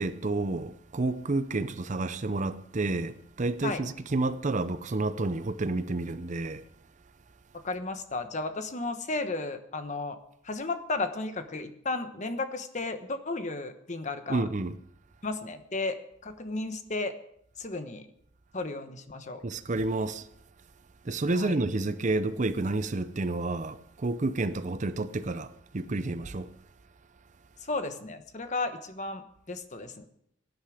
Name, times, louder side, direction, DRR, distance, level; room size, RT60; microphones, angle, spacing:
voice 1, 0.0-6.6 14.3-14.7 19.4-20.3 21.0-26.5, right 2 dB, 40° right, 0.6 m, -30 dB
voice 2, 7.6-10.2 10.4-14.4 15.2-16.0 16.2-17.1 17.6-18.1 18.5-19.4 21.3-21.6 27.6-30.1, left 3 dB, 40° left, 1.2 m, -34 dB
17.5 x 10.5 x 5.0 m
head